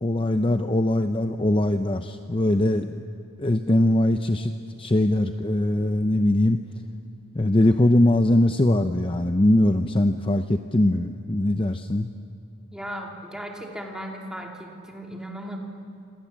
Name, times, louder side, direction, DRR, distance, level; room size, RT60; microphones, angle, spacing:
voice 1, 0.0-3.0 3.4-6.6 7.3-12.1, left 1 dB, 25° left, 7 dB, 0.6 m, -21 dB
voice 2, 12.7-15.6, equal, 5° right, 0 dB, 2.7 m, -36 dB
27.5 x 26.5 x 7.4 m, 2.7 s
head